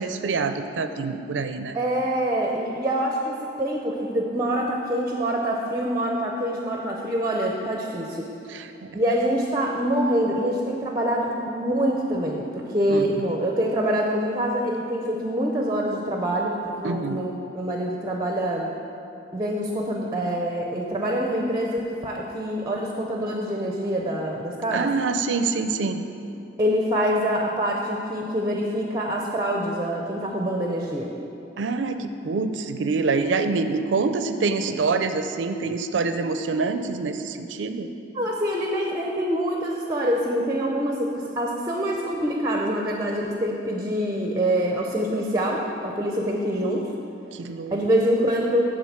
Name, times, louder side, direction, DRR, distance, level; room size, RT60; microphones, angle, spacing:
voice 1, 0.0-1.8 8.5-8.9 12.9-13.2 16.8-17.2 24.7-26.0 31.6-37.9 47.3-47.8, right 4 dB, 85° right, 9 dB, 0.4 m, -26 dB
voice 2, 1.7-8.3 8.9-18.7 19.3-24.9 26.6-31.1 38.1-46.9 47.7-48.6, equal, 20° right, 0 dB, 0.6 m, -25 dB
9.3 x 3.9 x 7.2 m, 2.7 s
head